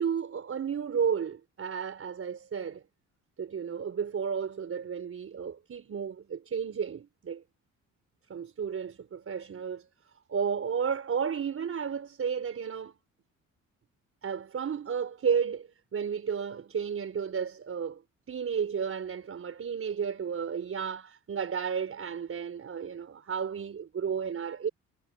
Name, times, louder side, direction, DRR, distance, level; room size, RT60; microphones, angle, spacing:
voice 1, 0.0-2.8 3.4-7.4 8.3-9.9 10.3-13.0 14.2-18.0 18.3-24.7, right 7 dB, 50° right, 5.2 m, -32 dB
cardioid pair, 90°, 30 cm